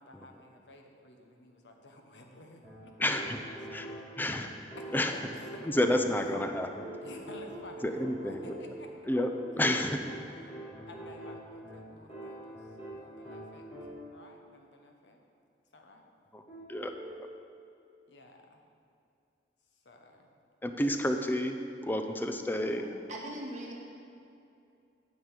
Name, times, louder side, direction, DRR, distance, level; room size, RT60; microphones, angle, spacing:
voice 1, 0.0-3.4 3.7-4.2 4.7-4.9 5.1-5.6 6.3-6.4 7.0-8.9 10.1-10.6 10.9-12.7 12.9-13.7 14.1-15.2 15.7-16.1 18.1-18.6 19.8-20.3, left 2 dB, 85° left, 3 dB, 1.2 m, -52 dB
sound 1, 2.6-14.2 16.5-17.3, right 1 dB, 35° left, 2.7 m, -45 dB
voice 2, 3.0-3.4 3.7-3.9 4.2-4.5 4.9-5.1 5.7-6.7 7.8-8.4 9.1-9.3 9.6-10.0 16.3-16.4 16.7-16.9 20.6-21.6 21.8-22.8, left 1 dB, 10° left, 6 dB, 0.6 m, -29 dB
voice 3, 22.7-23.8, right 1 dB, 45° right, -2 dB, 1.6 m, -41 dB
9.4 x 5.3 x 8.1 m, 2.6 s
head